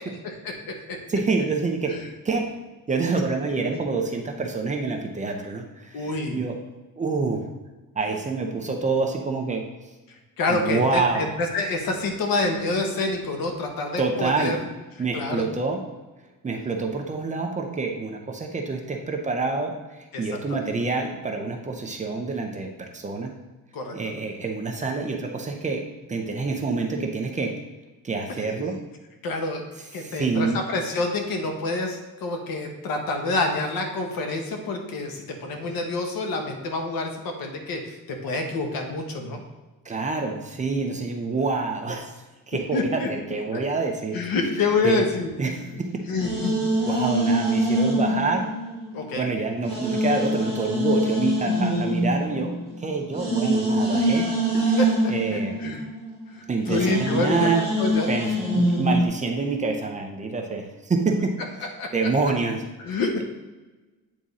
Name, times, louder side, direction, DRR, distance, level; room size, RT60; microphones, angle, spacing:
voice 1, 1.1-1.9 2.2-6.5 7.0-7.5 7.9-9.9 10.5-11.3 14.0-14.6 15.0-15.8 16.4-23.3 23.9-27.6 28.0-28.8 29.8-30.6 39.8-42.1 42.5-44.2 44.8-45.0 45.4-46.0 46.7-48.4 49.2-52.5 52.8-54.3 55.1-55.6 56.5-57.6 58.1-61.3 61.9-63.2, right 4 dB, 20° right, 2 dB, 0.6 m, -27 dB
voice 2, 5.9-6.4 10.4-14.6 15.1-15.5 20.5-20.6 23.7-24.0 29.2-29.6 29.9-30.5 30.7-39.4 42.7-43.1 43.5-43.6 44.1-45.3 46.1-46.6 48.9-49.2 54.8-55.8 56.3-57.5 57.8-58.1 61.8-61.9 62.9-63.2, left 3 dB, 80° left, 3 dB, 1.3 m, -27 dB
sound 1, 45.4-49.2 49.7-59.0, equal, 15° left, 1.4 m, -25 dB
8.8 x 3.7 x 4.1 m, 1.2 s
cardioid pair, 180°, 35 cm